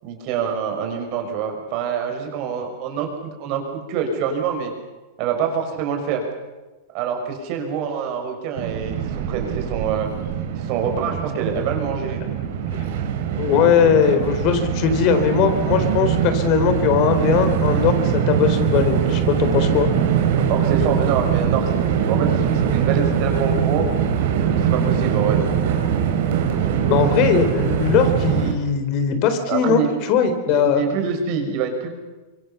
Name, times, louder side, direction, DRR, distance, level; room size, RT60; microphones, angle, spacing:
voice 1, 0.0-4.7 5.2-6.3 6.9-10.1 10.6-12.2 20.5-23.9 24.5-25.4 29.5-29.9 30.5-31.9, right 6 dB, 50° right, 4 dB, 6.0 m, -25 dB
Train, 8.6-28.5, right 8 dB, 70° right, 4.0 m, -22 dB
voice 2, 13.4-19.9 26.9-29.8 30.1-30.8, left 7 dB, 50° left, 8 dB, 4.1 m, -19 dB
25.0 x 23.5 x 7.0 m, 1.2 s
hypercardioid pair, 125°, 0 cm